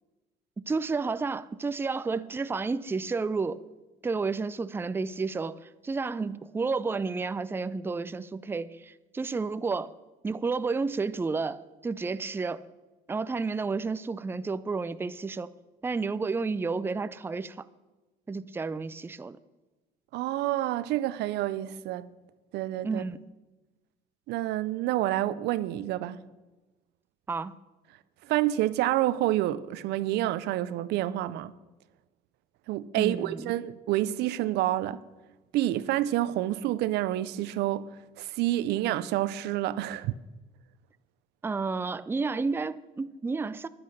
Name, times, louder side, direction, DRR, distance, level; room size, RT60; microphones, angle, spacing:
voice 1, 0.6-3.6 4.0-9.9 10.2-12.6 13.1-15.5 15.8-17.6 18.3-19.4 22.8-23.2 27.3-27.6 32.9-33.5 41.4-43.7, right 4 dB, 15° right, 0.4 m, -31 dB
voice 2, 20.1-22.1 22.5-23.0 24.3-26.2 28.2-31.5 32.7-35.0 35.5-37.9 38.2-40.1, right 14 dB, 85° right, 0.6 m, -28 dB
10.5 x 9.8 x 6.5 m
cardioid pair, 110°, 17 cm